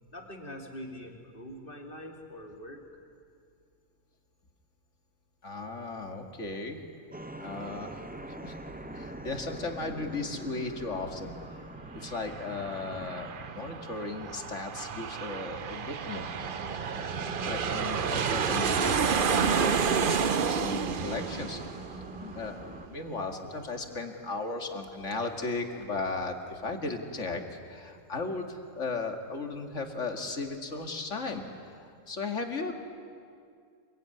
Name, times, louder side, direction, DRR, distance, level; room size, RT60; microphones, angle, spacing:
voice 1, 0.1-3.0, equal, 40° left, 2 dB, 3.0 m, -44 dB
voice 2, 5.4-6.8 7.4-8.0 8.4-8.6 8.9-11.4 11.9-16.3 17.4-21.6 21.9-32.7, left 3 dB, 60° left, 4 dB, 2.5 m, -36 dB
sound 1, 7.1-22.9, right 1 dB, 5° right, 0.9 m, -43 dB
Aircraft, 11.9-23.0, right 6 dB, 45° right, 0.9 m, -30 dB
27.0 x 22.5 x 9.8 m, 2.3 s
omnidirectional pair, 1.4 m